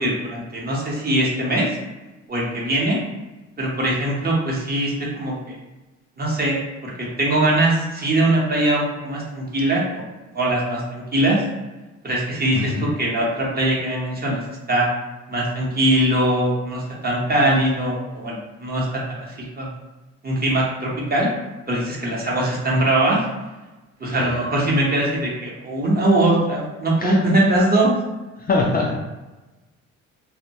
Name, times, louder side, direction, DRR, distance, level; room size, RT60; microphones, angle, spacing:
voice 1, 0.0-1.8 2.3-3.0 3.6-5.5 6.2-10.0 10.3-11.4 12.0-14.4 14.7-14.9 15.3-19.0 19.6-19.7 20.2-21.3 21.7-23.2 24.0-28.0, right 1 dB, 30° right, -4 dB, 0.8 m, -21 dB
voice 2, 12.5-12.9 24.1-24.4 27.0-27.2 28.4-28.9, left 3 dB, 30° left, -2 dB, 0.3 m, -23 dB
2.1 x 2.1 x 2.7 m, 1.1 s
cardioid pair, 90°, 30 cm